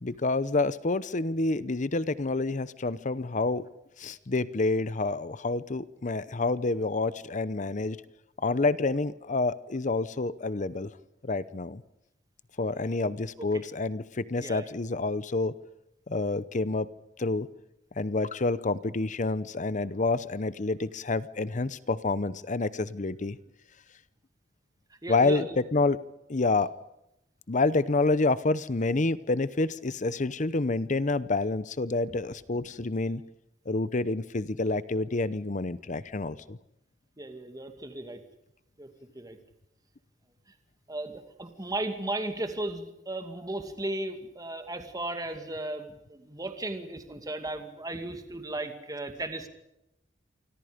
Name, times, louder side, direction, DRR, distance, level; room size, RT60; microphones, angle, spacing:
voice 1, 0.0-3.6 4.0-8.0 8.4-10.9 11.2-11.8 12.6-15.5 16.1-16.9 17.2-17.5 18.0-23.4 25.1-26.0 26.3-26.7 27.5-33.2 33.7-36.6, left 3 dB, 45° left, 16 dB, 0.8 m, -28 dB
voice 2, 25.0-25.6 37.2-38.2 38.8-38.9 39.1-39.4 40.9-49.5, right 2 dB, 20° right, 6 dB, 2.3 m, -35 dB
28.0 x 25.5 x 5.2 m, 0.84 s
head